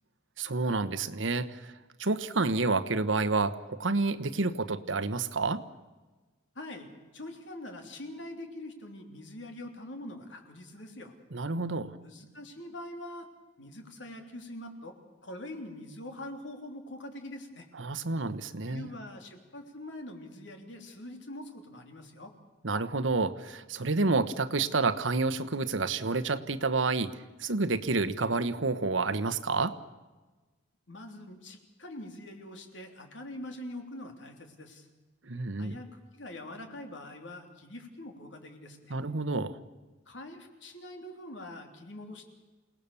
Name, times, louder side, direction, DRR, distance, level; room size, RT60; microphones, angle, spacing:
voice 1, 0.4-1.7 2.0-5.6 11.3-11.9 17.8-18.9 22.6-29.8 35.2-35.8 38.9-39.6, right 3 dB, 85° right, 11 dB, 1.2 m, -29 dB
voice 2, 6.6-11.1 12.0-13.3 13.6-15.0 15.2-17.7 18.7-22.3 30.9-34.9 35.6-39.0 40.1-42.3, left 1 dB, 70° left, 4 dB, 3.3 m, -44 dB
28.5 x 18.5 x 7.1 m, 1.2 s
head